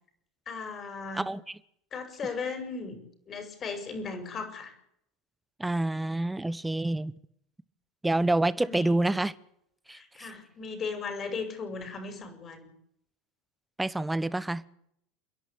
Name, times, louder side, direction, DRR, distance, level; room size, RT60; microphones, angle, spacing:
voice 1, 0.5-1.3 1.9-3.0 3.3-4.7 8.6-9.0 9.9-12.6, left 4 dB, 35° left, 8 dB, 6.2 m, -37 dB
voice 2, 1.1-1.6 5.6-7.1 8.0-9.3 9.9-10.3 13.8-14.6, right 2 dB, 10° right, 17 dB, 1.1 m, -28 dB
29.0 x 11.0 x 8.6 m, 0.74 s
hypercardioid pair, 80°, 0 cm